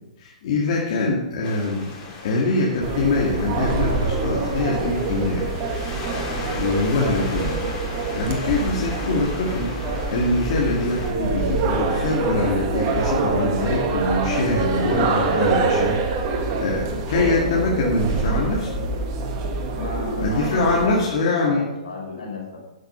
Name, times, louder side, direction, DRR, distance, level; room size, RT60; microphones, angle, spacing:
voice 1, 0.2-1.9 2.2-5.4 6.5-7.6 8.1-16.2 16.6-18.7 20.2-21.7, left 3 dB, 55° left, -3 dB, 2.2 m, -23 dB
sound 1, 1.4-11.1, left 3 dB, 30° left, 3.3 m, -36 dB
sound 2, 2.8-20.9, right 3 dB, 40° right, 1.6 m, -25 dB
voice 2, 8.5-8.8 13.5-13.6 14.9-15.2 16.5-16.6 19.7-22.6, left 4 dB, 80° left, -1 dB, 4.4 m, -35 dB
11.5 x 6.5 x 5.7 m, 0.99 s
figure-of-eight pair, 120°, 4 cm